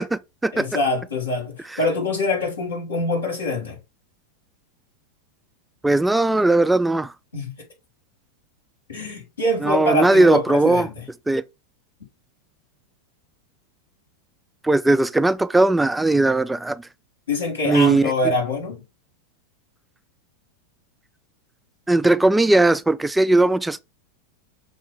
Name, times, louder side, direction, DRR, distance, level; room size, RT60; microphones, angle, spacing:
voice 1, 0.0-0.6 5.8-7.1 9.6-10.9 11.3-11.4 14.6-16.8 17.7-18.1 21.9-23.8, right 2 dB, 5° right, 0.3 m, -18 dB
voice 2, 0.5-3.8 7.3-7.5 8.9-11.0 17.3-18.8, left 2 dB, 80° left, 3.3 m, -24 dB
6.5 x 3.0 x 5.1 m
figure-of-eight pair, 90°, 0 cm